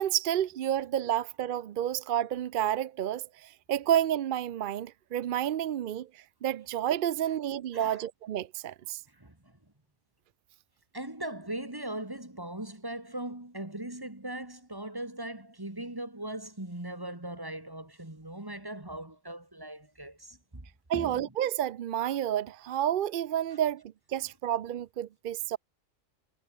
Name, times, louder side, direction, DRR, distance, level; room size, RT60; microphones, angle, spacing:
voice 1, 0.0-9.0 20.9-23.8 24.1-25.6, right 11 dB, 60° right, 0.5 m, -30 dB
voice 2, 7.7-8.1 9.1-9.6 10.9-20.7 20.9-21.3 24.2-24.3, right 1 dB, 15° right, 2.3 m, -39 dB
omnidirectional pair, 1.3 m